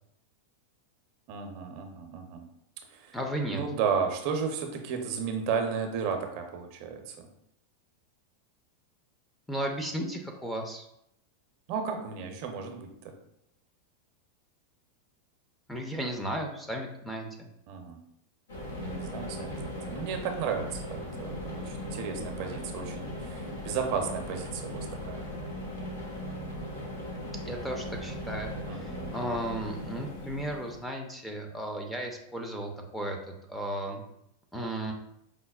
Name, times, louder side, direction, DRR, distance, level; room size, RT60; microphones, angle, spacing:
voice 1, 1.3-2.5 2.9-3.2 3.5-7.3 11.7-13.1 17.7-18.0 18.8-25.3 28.7-29.5, right 6 dB, 55° right, 4 dB, 0.6 m, -34 dB
voice 2, 3.1-3.6 9.5-10.8 15.7-17.3 27.4-33.2 33.5-34.0 34.5-34.9, right 1 dB, 5° left, 2 dB, 0.5 m, -34 dB
sound 1, 18.5-30.8, left 1 dB, 85° left, 0.8 m, -38 dB
4.9 x 2.0 x 2.3 m, 0.77 s
hypercardioid pair, 115°, 0 cm